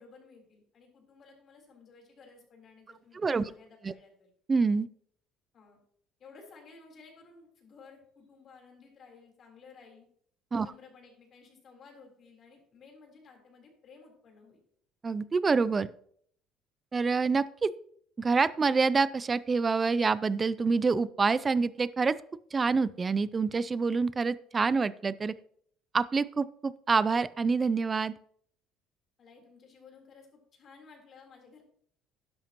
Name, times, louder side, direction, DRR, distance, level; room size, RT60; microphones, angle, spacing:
voice 1, 0.0-4.3 5.5-5.8 6.2-10.1 10.6-14.6 29.2-31.6, left 4 dB, 45° left, 1 dB, 3.6 m, -55 dB
voice 2, 3.2-3.5 3.8-3.9 4.5-4.9 10.5-10.7 15.0-15.9 16.9-17.7 18.2-22.2 22.5-25.3 25.9-28.1, right 4 dB, 25° right, 17 dB, 0.4 m, -27 dB
12.0 x 11.0 x 3.0 m, 0.64 s
cardioid pair, 125°, 0 cm